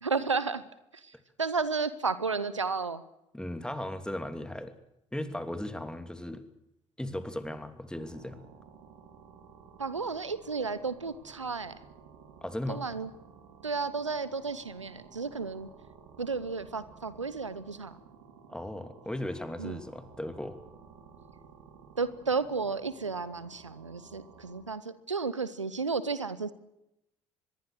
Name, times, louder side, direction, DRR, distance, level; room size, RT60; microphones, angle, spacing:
voice 1, 0.0-0.6 0.9-3.0 9.8-11.8 12.7-13.1 13.6-15.7 16.2-18.0 19.6-19.8 22.0-26.5, right 4 dB, 90° right, 16 dB, 0.8 m, -33 dB
voice 2, 3.3-4.7 5.1-6.4 7.0-8.4 12.4-12.8 18.5-20.6, left 1 dB, 5° left, 9 dB, 2.9 m, -37 dB
sound 1, 7.9-24.6, right 6 dB, 65° right, 3.6 m, -54 dB
25.0 x 21.5 x 6.6 m, 0.85 s
figure-of-eight pair, 50°, 15 cm